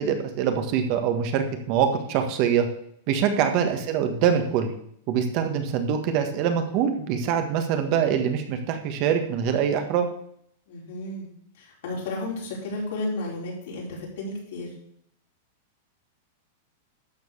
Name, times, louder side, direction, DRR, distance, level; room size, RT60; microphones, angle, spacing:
voice 1, 0.0-2.7 3.1-4.7 5.1-10.1, right 8 dB, 45° right, 6 dB, 1.4 m, -24 dB
voice 2, 3.3-3.7 10.7-11.3 11.6-14.7, left 2 dB, 65° left, -3 dB, 4.8 m, -33 dB
12.0 x 4.6 x 7.2 m, 0.68 s
supercardioid pair, 145°, 0 cm